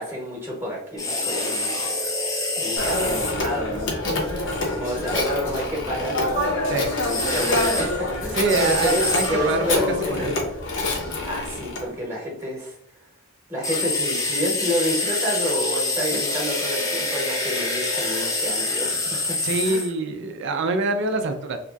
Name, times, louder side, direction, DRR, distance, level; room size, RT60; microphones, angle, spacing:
voice 1, 0.0-1.7 2.6-4.0 4.3-6.2 6.6-9.0 9.3-10.3 11.2-12.7 13.5-19.4 19.6-19.8 20.2-20.3, equal, 10° right, -3 dB, 0.8 m, -29 dB
sound 1, 1.0-3.3 7.1-7.9 8.5-9.3 13.6-19.9, left 2 dB, 15° left, 0.4 m, -26 dB
Telephone, 2.8-11.8, left 2 dB, 60° left, 0.6 m, -26 dB
voice 2, 8.3-10.3 19.4-21.6, right 3 dB, 55° right, 7 dB, 0.3 m, -25 dB
2.9 x 2.5 x 2.3 m, 0.71 s
head